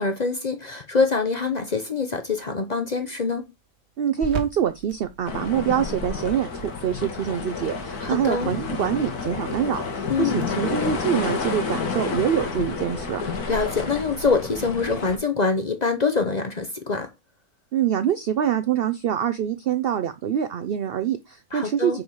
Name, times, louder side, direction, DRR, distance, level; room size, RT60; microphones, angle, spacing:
voice 1, 0.0-3.5 8.0-8.5 10.1-10.4 13.5-17.1 21.5-22.0, left 4 dB, 40° left, 0.6 m, -24 dB
sound 1, 2.2-14.3, right 4 dB, 50° right, 1.4 m, -43 dB
voice 2, 4.0-13.2 17.7-22.0, right 9 dB, 80° right, 0.5 m, -25 dB
sound 2, 5.2-15.2, left 4 dB, 90° left, 1.8 m, -30 dB
4.8 x 4.7 x 5.5 m
omnidirectional pair, 1.6 m